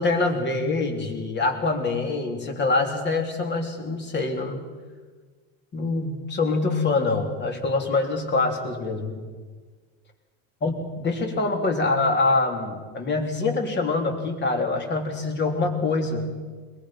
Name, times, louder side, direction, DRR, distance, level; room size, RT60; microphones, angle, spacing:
voice 1, 0.0-4.6 5.7-9.2 10.6-16.3, left 3 dB, 30° left, 4 dB, 3.3 m, -25 dB
22.0 x 22.0 x 5.8 m, 1.5 s
cardioid pair, 140°, 38 cm